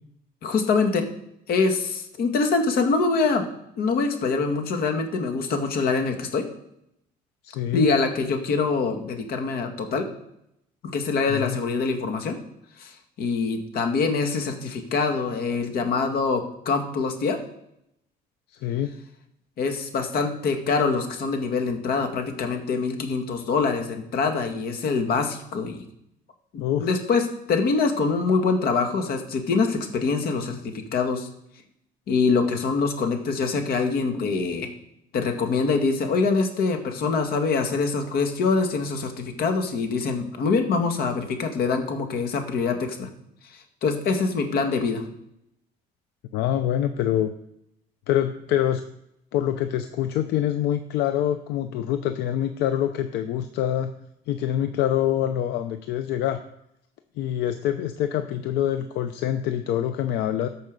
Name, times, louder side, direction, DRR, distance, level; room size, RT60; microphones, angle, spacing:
voice 1, 0.4-1.0 1.5-3.5 3.8-6.4 7.7-10.1 10.8-12.4 12.8-12.9 13.2-17.4 19.6-25.8 26.5-27.2 27.5-31.3 32.1-34.7 35.1-43.1 43.8-45.0, left 4 dB, 65° left, 5 dB, 1.9 m, -24 dB
voice 2, 7.4-7.9 11.3-11.6 18.6-18.9 26.6-26.9 46.3-47.3 48.1-48.8 49.3-53.9 54.3-56.4 57.2-60.5, left 11 dB, 85° left, 9 dB, 0.7 m, -25 dB
14.0 x 5.4 x 5.3 m, 0.78 s
cardioid pair, 110°, 17 cm